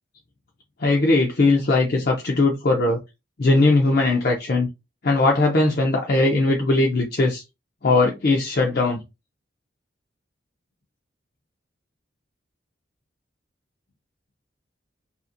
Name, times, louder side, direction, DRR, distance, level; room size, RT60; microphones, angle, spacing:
voice 1, 0.8-3.0 3.4-4.7 5.0-7.4 7.8-9.0, left 2 dB, 50° left, 0.5 m, -19 dB
2.7 x 2.5 x 2.4 m
head